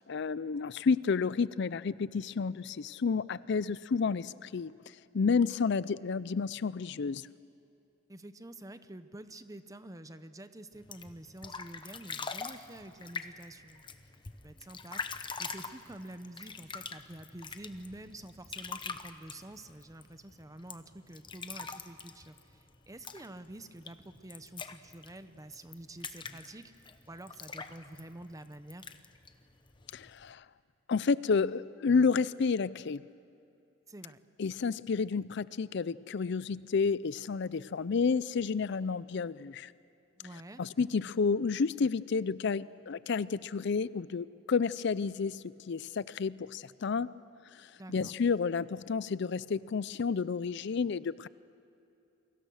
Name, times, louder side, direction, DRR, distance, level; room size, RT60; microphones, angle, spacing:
voice 1, 0.1-4.7 5.1-7.3 29.9-30.4 30.9-33.0 34.4-39.7 40.6-47.1 47.5-51.3, left 5 dB, 65° left, 18 dB, 0.5 m, -30 dB
voice 2, 8.1-14.0 14.4-28.9 33.9-34.2 40.2-40.6 47.7-48.1, right 1 dB, 20° right, 11 dB, 0.9 m, -48 dB
sound 1, 10.7-30.3, left 5 dB, 25° left, 1.0 m, -45 dB
29.5 x 23.0 x 6.4 m, 2.7 s
head